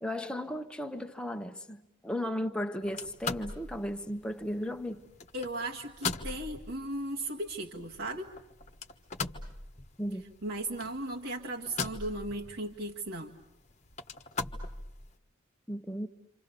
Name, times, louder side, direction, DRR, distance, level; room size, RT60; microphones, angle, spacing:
voice 1, 0.0-5.0 10.0-10.2 15.7-16.1, equal, 5° left, 1.1 m, -35 dB
sound 1, 2.8-15.2, left 4 dB, 35° left, 1.3 m, -41 dB
voice 2, 5.3-8.3 10.4-13.3, right 1 dB, 70° right, 1.9 m, -36 dB
28.0 x 27.0 x 6.9 m
head